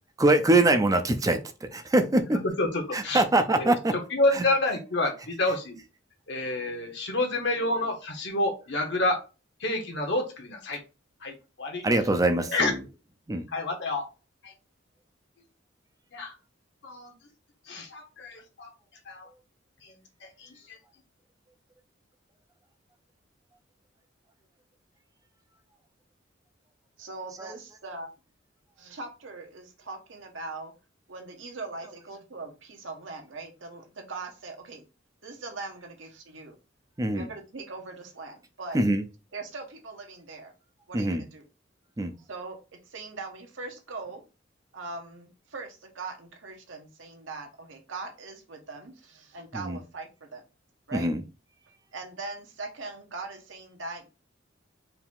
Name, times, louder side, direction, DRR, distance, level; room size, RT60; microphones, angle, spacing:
voice 1, 0.2-1.4 1.7-2.4 2.9-3.9 11.8-12.7 13.3-13.4 37.0-37.3 38.7-39.0 40.9-41.2 42.0-42.1 49.6-49.8 50.9-51.2, right 2 dB, 20° right, 0.5 m, -23 dB
voice 2, 2.3-3.2 3.6-5.7 6.3-9.2 9.6-10.8 11.2-11.8 12.5-12.7 13.5-14.0 14.4-14.5 16.1-16.3 16.8-17.1 17.7-18.7 19.0-19.3 19.8-19.9 20.2-20.8, left 2 dB, 65° left, 1.4 m, -29 dB
voice 3, 27.0-28.1 28.8-30.7 31.1-34.8 35.2-36.5 37.1-38.8 39.3-40.5 40.9-41.4 42.3-44.2 44.7-50.4 50.9-51.1 51.9-54.1, right 3 dB, 85° right, 1.3 m, -40 dB
4.7 x 2.8 x 3.6 m
head